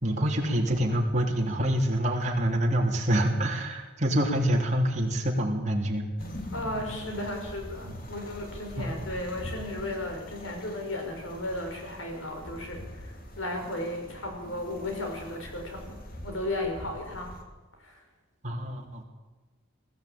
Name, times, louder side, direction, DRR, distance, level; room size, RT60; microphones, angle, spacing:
voice 1, 0.0-6.0 8.8-8.9 18.4-19.0, equal, 35° right, 0 dB, 3.3 m, -26 dB
sound 1, 6.2-17.4, equal, 45° left, 2.5 m, -43 dB
voice 2, 6.5-16.0 16.2-17.4 17.8-18.0, left 1 dB, 80° left, 3 dB, 5.0 m, -35 dB
20.5 x 14.5 x 8.7 m, 1.2 s
head